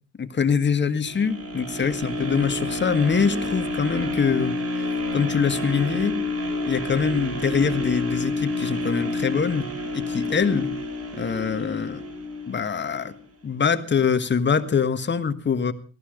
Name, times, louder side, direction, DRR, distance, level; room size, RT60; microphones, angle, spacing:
voice 1, 0.2-6.1 6.6-10.7 11.1-12.0 12.5-13.1 13.4-15.7, left 6 dB, 40° left, 10 dB, 1.8 m, -24 dB
sound 1, 1.1-13.2 13.7-13.8, left 2 dB, 50° right, 4.7 m, -29 dB
18.0 x 14.5 x 5.2 m, 0.38 s
cardioid pair, 90°, 30 cm